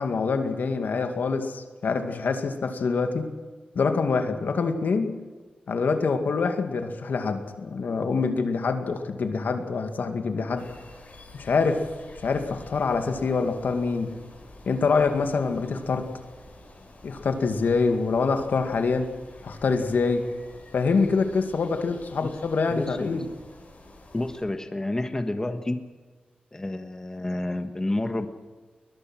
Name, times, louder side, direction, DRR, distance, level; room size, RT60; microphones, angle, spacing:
voice 1, 0.0-3.3 3.8-5.2 5.7-10.7 11.3-11.9 12.2-14.1 14.7-16.1 17.0-19.1 19.4-20.3 20.7-23.2, left 4 dB, 80° left, 6 dB, 2.2 m, -25 dB
sound 1, 10.6-24.4, left 2 dB, 50° left, 6.4 m, -49 dB
voice 2, 22.7-23.2 24.1-25.8 26.5-28.3, left 1 dB, 20° left, 7 dB, 1.5 m, -29 dB
21.5 x 21.0 x 6.2 m, 1.4 s
wide cardioid pair, 115°, 3 cm